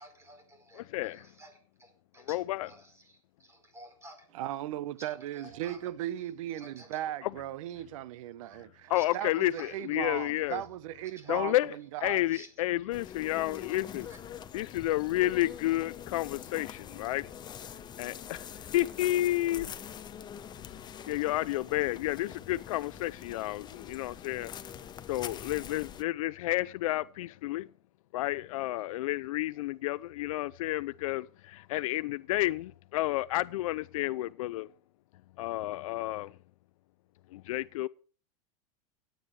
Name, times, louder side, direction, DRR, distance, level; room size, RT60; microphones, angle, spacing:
voice 1, 0.0-4.3 5.0-7.0 8.8-10.7 11.0-11.6 12.0-12.6 13.5-14.2, right 1 dB, 15° right, 4.7 m, -55 dB
voice 2, 2.3-2.7 7.2-7.3 8.9-10.6 11.3-11.7 12.0-14.1 14.5-17.3 18.0-18.1 18.7-19.7 20.7-20.8 21.1-24.5 25.1-27.7 28.1-34.7 35.4-36.3 37.3-37.9, left 16 dB, 75° left, 0.4 m, -31 dB
voice 3, 4.4-12.2, right 13 dB, 70° right, 1.0 m, -37 dB
sound 1, 12.9-26.0, left 9 dB, 25° left, 0.9 m, -44 dB
17.0 x 9.2 x 3.2 m
supercardioid pair, 125°, 17 cm